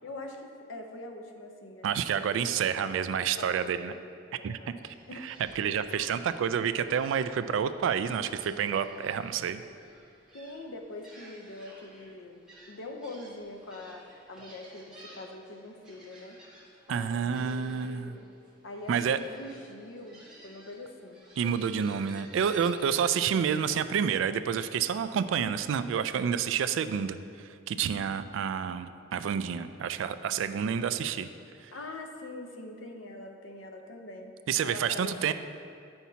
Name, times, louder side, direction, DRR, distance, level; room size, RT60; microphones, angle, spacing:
voice 1, 0.0-4.1 4.4-5.3 10.3-12.4 12.7-16.4 16.9-18.3 18.6-21.2 31.7-34.4 34.6-35.1, left 2 dB, 90° left, 4 dB, 0.7 m, -43 dB
voice 2, 1.8-3.9 4.4-4.9 5.2-9.6 16.9-18.1 18.9-19.2 21.4-31.3 31.6-31.7 34.5-35.3, right 7 dB, 75° right, 11 dB, 0.3 m, -29 dB
Gull seagull, 4.9-23.9, right 1 dB, 5° right, 1.6 m, -55 dB
9.1 x 5.7 x 2.8 m, 2.4 s
head